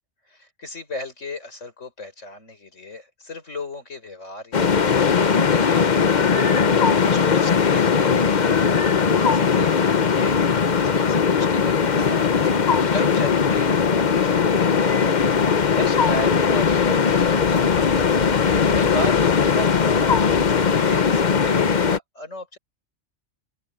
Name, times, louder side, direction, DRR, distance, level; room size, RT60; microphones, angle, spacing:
voice 1, 0.3-9.0 9.2-10.4 10.7-15.4 15.7-18.2 18.7-22.6, left 2 dB, 75° left, 5.4 m, -35 dB
sound 1, 4.5-22.0, left 6 dB, 40° left, 0.9 m, -19 dB
open air
omnidirectional pair, 1.3 m